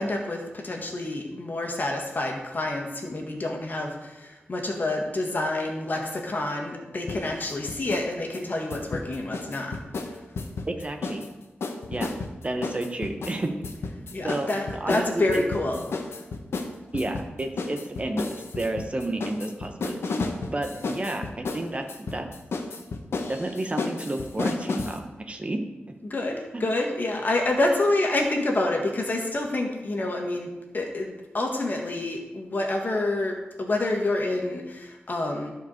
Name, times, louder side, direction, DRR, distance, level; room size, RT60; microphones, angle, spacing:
voice 1, 0.0-9.7 14.1-15.8 26.0-35.5, left 2 dB, 50° left, 1 dB, 1.8 m, -28 dB
sound 1, 7.1-8.1 8.3-11.3 11.6-25.0, left 3 dB, 85° left, 0.9 m, -33 dB
voice 2, 10.7-11.3 11.9-12.1 12.4-13.5 14.2-14.5 14.8-15.4 16.9-22.3 23.3-25.6 25.9-26.0 26.5-26.7, right 1 dB, 30° right, 5 dB, 1.0 m, -31 dB
11.5 x 4.7 x 6.5 m, 1.1 s
wide cardioid pair, 90°, 4 cm